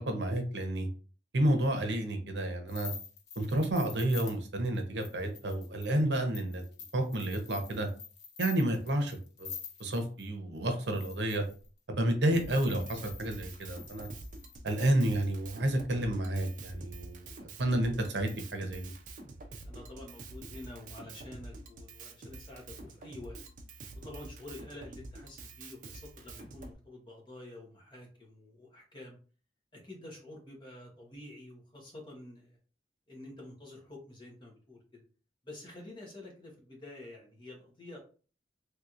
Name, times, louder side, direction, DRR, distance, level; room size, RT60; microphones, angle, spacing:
voice 1, 0.1-0.9 1.3-2.9 3.4-6.6 6.9-7.9 8.4-9.5 9.8-11.4 11.9-14.1 14.6-17.3 17.6-18.9, right 1 dB, 80° right, 5 dB, 0.7 m, -30 dB
sound 1, 2.7-10.3 10.8-11.7 12.3-14.6, left 7 dB, 70° left, 0.7 m, -47 dB
Drum kit, 12.3-26.7, right 2 dB, 45° right, 0.4 m, -47 dB
voice 2, 19.6-23.4 23.9-29.2 29.7-32.6 33.1-35.0 35.4-38.0, left 1 dB, 25° left, -1 dB, 1.0 m, -48 dB
3.3 x 2.9 x 2.4 m, 0.38 s
head